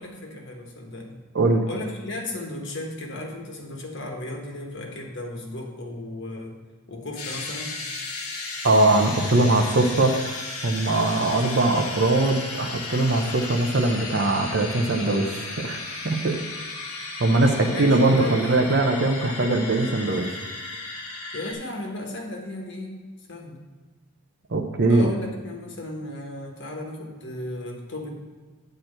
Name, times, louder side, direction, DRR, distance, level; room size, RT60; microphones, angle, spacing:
voice 1, 0.0-1.2 1.7-6.6 6.9-7.8 17.4-18.6 19.3-19.4 21.3-22.9 23.3-23.6 24.9-28.1, left 1 dB, 55° left, 1 dB, 1.3 m, -35 dB
sound 1, 7.2-21.5, left 3 dB, 85° left, 1.6 m, -35 dB
voice 2, 8.6-10.4 10.6-16.4 17.2-20.3 24.5-25.1, right 2 dB, 50° right, 4 dB, 0.7 m, -21 dB
9.1 x 4.5 x 6.5 m, 1.3 s
head